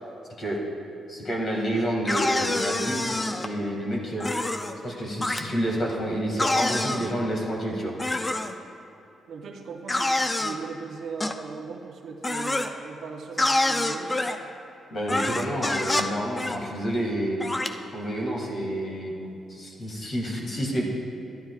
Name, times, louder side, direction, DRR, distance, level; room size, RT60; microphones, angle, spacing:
voice 1, 1.1-3.1 3.4-4.3 4.8-7.9 14.9-17.4 17.9-19.1 19.5-20.8, equal, 45° left, -2 dB, 2.0 m, -29 dB
sound 1, 2.1-3.5 4.2-4.8 5.2-5.4 6.4-7.1 8.0-8.5 9.9-10.6 11.2-11.4 12.2-12.7 13.4-14.4 15.1-16.1 16.4-16.6 17.4-17.7, left 2 dB, 15° left, 0.4 m, -26 dB
voice 2, 9.3-14.4, right 5 dB, 65° right, 3 dB, 0.8 m, -38 dB
12.5 x 10.5 x 2.4 m, 2.7 s
cardioid pair, 135°, 0 cm